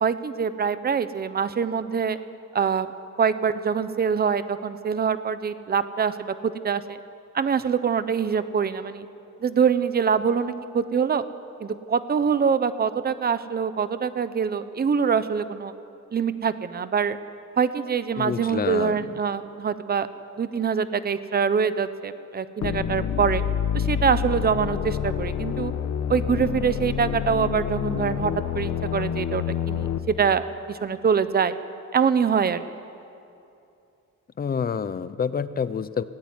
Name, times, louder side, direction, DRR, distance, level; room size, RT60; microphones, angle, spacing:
voice 1, 0.0-2.2 2.5-2.9 3.2-7.0 7.3-9.1 9.4-11.2 11.6-15.7 16.1-17.2 17.6-20.1 20.4-23.4 23.7-25.7 26.1-31.5 31.9-32.6, right 6 dB, 30° right, 12 dB, 0.9 m, -24 dB
voice 2, 18.2-19.1 34.4-36.0, left 6 dB, 30° left, 14 dB, 0.7 m, -28 dB
sound 1, 22.6-30.0, left 8 dB, 65° left, 1.3 m, -27 dB
25.0 x 18.5 x 9.7 m, 2.7 s
wide cardioid pair, 175°, 31 cm